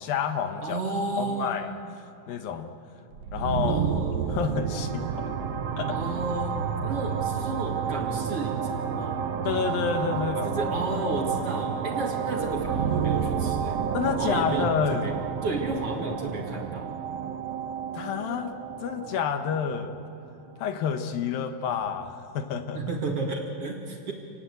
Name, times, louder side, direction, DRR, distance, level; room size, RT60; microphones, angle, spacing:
voice 1, 0.0-0.8 1.2-1.7 2.3-2.7 3.3-3.8 4.3-5.4 5.8-6.0 9.5-10.5 13.9-15.1 17.9-18.5 18.8-20.0 20.6-22.8, left 7 dB, 75° left, 7 dB, 3.0 m, -29 dB
voice 2, 0.6-1.6 3.7-4.2 5.9-9.2 10.4-13.8 14.2-15.2 15.4-16.9 22.7-24.1, right 3 dB, 45° right, 1 dB, 2.7 m, -32 dB
sound 1, 3.1-20.8, right 7 dB, 70° right, 1.5 m, -31 dB
sound 2, 3.3-11.6, right 4 dB, 20° left, 5.3 m, -36 dB
29.0 x 19.0 x 8.3 m, 2.5 s
omnidirectional pair, 4.3 m